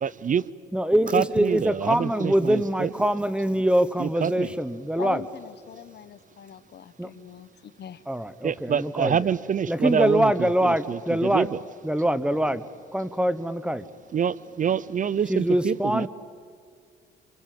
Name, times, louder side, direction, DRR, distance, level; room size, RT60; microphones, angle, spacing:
voice 1, 0.0-0.5 1.1-2.9 4.0-4.5 8.4-11.6 14.1-16.1, right 8 dB, 40° right, 20 dB, 0.6 m, -26 dB
voice 2, 0.7-5.2 7.0-7.1 8.1-9.3 9.7-11.5 11.8-12.6 12.9-13.8 15.3-16.1, right 1 dB, 5° right, 14 dB, 1.1 m, -24 dB
voice 3, 5.0-8.0, left 9 dB, 60° left, 14 dB, 1.1 m, -41 dB
27.0 x 25.5 x 7.7 m, 2.1 s
cardioid pair, 90°, 20 cm